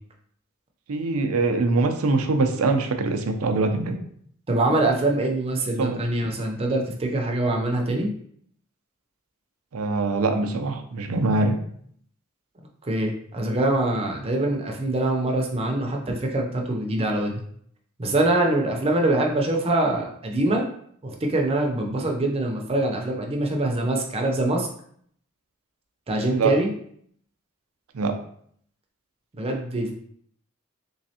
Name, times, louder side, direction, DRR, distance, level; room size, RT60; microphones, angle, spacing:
voice 1, 0.9-4.0 5.8-6.0 9.7-11.6 26.4-26.5 27.9-28.1, right 3 dB, 85° right, 6 dB, 0.5 m, -23 dB
voice 2, 4.5-8.1 12.8-17.4 18.0-20.6 21.0-24.7 26.1-26.7 29.3-29.9, right 2 dB, 25° right, 1 dB, 0.5 m, -24 dB
3.4 x 3.1 x 2.8 m, 0.64 s
head